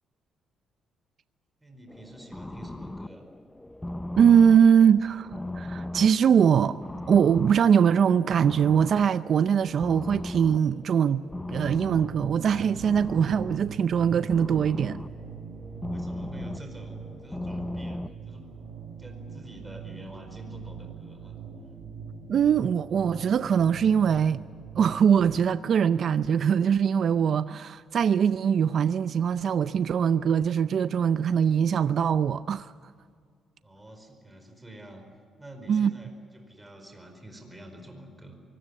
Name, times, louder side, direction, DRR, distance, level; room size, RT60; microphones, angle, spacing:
voice 1, 1.6-3.3 15.8-18.5 19.0-21.3 33.6-35.0 35.4-38.4, right 1 dB, 10° right, 4.8 m, -47 dB
sound 1, 1.9-18.1, left 1 dB, 10° left, 0.5 m, -38 dB
voice 2, 4.2-5.3 5.6-6.8 7.1-11.2 11.5-15.0 22.3-24.4 24.8-32.7 35.7-35.9, right 7 dB, 60° right, 0.5 m, -22 dB
sound 2, 11.8-25.4, right 6 dB, 80° right, 5.3 m, -43 dB
24.0 x 17.0 x 9.6 m
cardioid pair, 90°, 0 cm